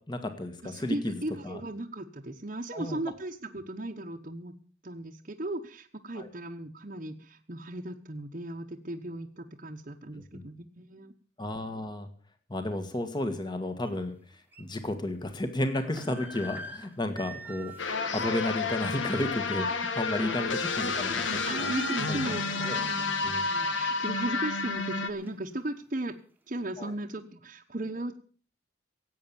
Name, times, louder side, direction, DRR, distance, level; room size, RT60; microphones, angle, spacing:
voice 1, 0.1-1.1 1.4-1.6 2.7-3.0 6.2-6.3 10.3-10.4 11.4-12.1 12.5-14.1 14.6-17.7 18.1-19.7 19.9-20.5 20.8-21.7 22.1-22.3 22.6-22.8 23.2-23.4 26.8-26.9, left 1 dB, 25° left, 8 dB, 1.7 m, -32 dB
voice 2, 0.6-4.5 4.8-11.1 21.4-26.1 26.5-28.2, right 1 dB, 40° right, 0 dB, 1.1 m, -37 dB
sound 1, 13.8-13.9 14.5-14.6 15.5-19.4 19.8-20.0 20.3-20.7 21.0-21.1 21.3-23.3 23.7-23.8 24.4-25.7, right 2 dB, 10° right, 1.4 m, -45 dB
sound 2, 17.8-25.1, left 4 dB, 85° left, 1.6 m, -30 dB
17.0 x 8.7 x 7.1 m, 0.42 s
head